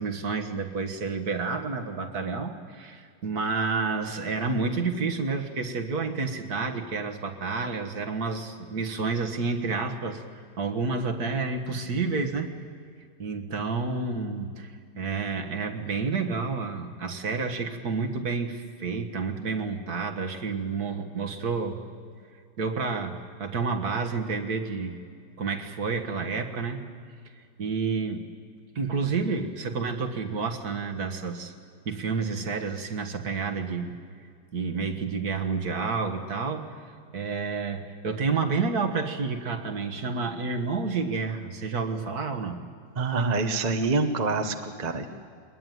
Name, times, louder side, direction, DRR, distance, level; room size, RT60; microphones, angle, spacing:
voice 1, 0.0-12.6 13.2-21.8 22.6-25.0 25.4-26.8 27.6-28.3 28.8-31.5 31.9-33.9 34.5-36.8 37.1-42.6, right 4 dB, 50° right, 4 dB, 1.9 m, -30 dB
voice 2, 43.0-45.1, right 3 dB, 30° right, 6 dB, 0.9 m, -26 dB
22.5 x 20.5 x 9.3 m, 2.2 s
omnidirectional pair, 2.1 m